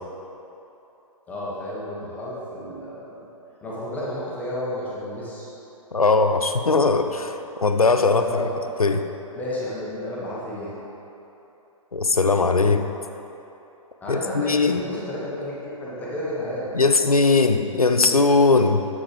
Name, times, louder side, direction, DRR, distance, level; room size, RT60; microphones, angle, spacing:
voice 1, 1.3-3.3 3.6-5.5 8.1-8.5 9.3-10.7 14.0-16.7, left 1 dB, 10° left, -7 dB, 1.1 m, -32 dB
voice 2, 5.9-8.4 8.8-9.1 11.9-12.9 14.1-14.8 16.7-18.9, left 3 dB, 90° left, 7 dB, 0.4 m, -19 dB
7.4 x 6.0 x 3.3 m, 3.0 s
figure-of-eight pair, 125°, 18 cm